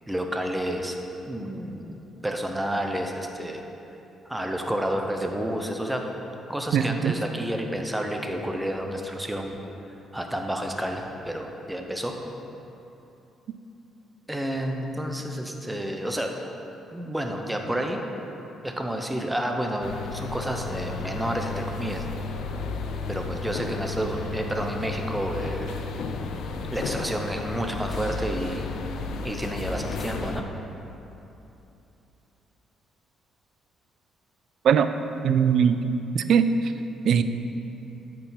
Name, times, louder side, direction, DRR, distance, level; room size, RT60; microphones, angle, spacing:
voice 1, 0.1-1.0 1.3-3.6 4.3-6.0 6.5-9.6 10.1-12.1 14.3-16.3 16.9-18.0 18.6-22.0 23.1-25.8 26.7-28.7 29.2-30.5, right 1 dB, 10° right, 3 dB, 0.7 m, -30 dB
voice 2, 6.7-7.1 34.6-34.9 35.2-35.8 36.1-36.5 37.0-37.2, right 8 dB, 65° right, 10 dB, 0.3 m, -20 dB
sound 1, 19.8-30.4, left 4 dB, 75° left, 0.4 m, -33 dB
8.6 x 4.8 x 3.9 m, 2.9 s
cardioid pair, 90°, 0 cm